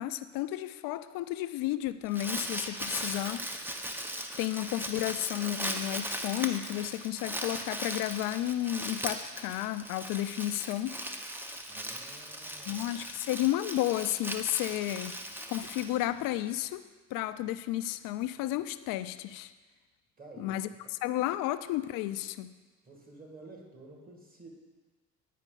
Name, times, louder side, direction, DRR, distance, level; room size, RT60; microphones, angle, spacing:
voice 1, 0.0-3.5 4.4-11.0 12.7-15.2 15.5-19.5 20.4-22.5, left 14 dB, 60° left, 14 dB, 0.5 m, -32 dB
Crumpling crinkling, 1.9-16.5, equal, 5° right, 0.7 m, -38 dB
voice 2, 11.7-12.9 20.2-20.6 22.8-24.5, right 2 dB, 25° right, -1 dB, 1.9 m, -51 dB
9.2 x 4.8 x 3.9 m, 1.4 s
hypercardioid pair, 55°, 38 cm